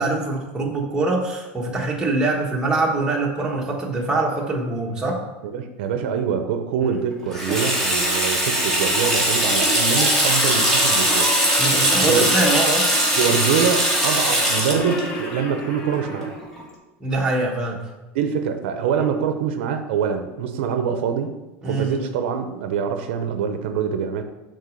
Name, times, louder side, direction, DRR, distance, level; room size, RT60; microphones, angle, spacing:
voice 1, 0.0-5.2 6.8-6.9 11.6-12.9 17.0-17.8 21.6-22.1, right 2 dB, 10° right, -2 dB, 1.4 m, -23 dB
voice 2, 5.4-11.3 12.0-12.3 13.2-16.4 18.1-21.4 21.6-24.2, right 7 dB, 80° right, 7 dB, 0.7 m, -24 dB
Water tap faucet / Sink (filling or washing), 7.3-16.6, right 1 dB, 5° left, 1.9 m, -21 dB
Screaming, 9.9-16.4, left 2 dB, 25° left, 1.0 m, -32 dB
6.7 x 4.0 x 6.3 m, 1.1 s
supercardioid pair, 145°, 6 cm